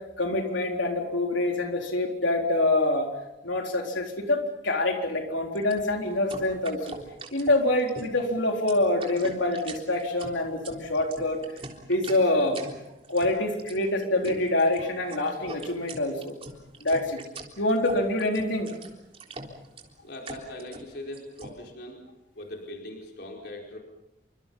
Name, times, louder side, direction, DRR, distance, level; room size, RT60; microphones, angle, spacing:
voice 1, 0.2-3.1 3.4-7.0 7.3-11.4 11.9-12.6 13.1-16.3 16.8-17.2 17.6-18.7, left 2 dB, 90° left, 2 dB, 4.1 m, -26 dB
sound 1, 5.6-21.5, right 2 dB, 30° right, 3.7 m, -43 dB
voice 2, 20.0-22.0 22.3-23.8, left 1 dB, 60° left, 0 dB, 4.8 m, -40 dB
28.5 x 25.5 x 5.6 m, 0.89 s
head